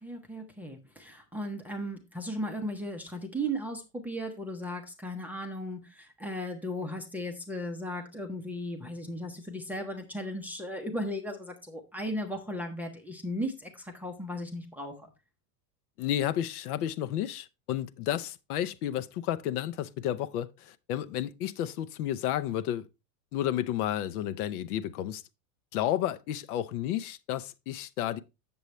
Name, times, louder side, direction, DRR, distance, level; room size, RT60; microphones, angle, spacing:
voice 1, 0.0-15.1, equal, 5° right, 0.5 m, -36 dB
voice 2, 16.0-22.9 23.3-25.2 25.7-28.2, left 11 dB, 65° left, 0.7 m, -31 dB
7.9 x 7.0 x 3.1 m
supercardioid pair, 145°, 49 cm